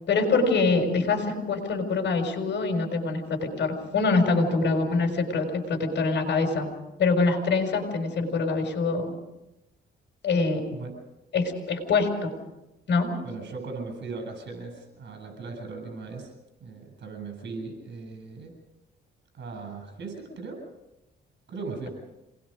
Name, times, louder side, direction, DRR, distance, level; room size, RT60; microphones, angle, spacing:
voice 1, 0.1-6.7 7.0-9.0 10.2-10.6 11.3-12.3 12.9-13.1, left 3 dB, 60° left, 4 dB, 6.0 m, -24 dB
voice 2, 13.2-16.3 16.6-18.5 19.3-20.6 21.5-21.9, right 4 dB, 60° right, 5 dB, 7.6 m, -38 dB
27.0 x 20.5 x 5.2 m, 0.96 s
cardioid pair, 90°, 20 cm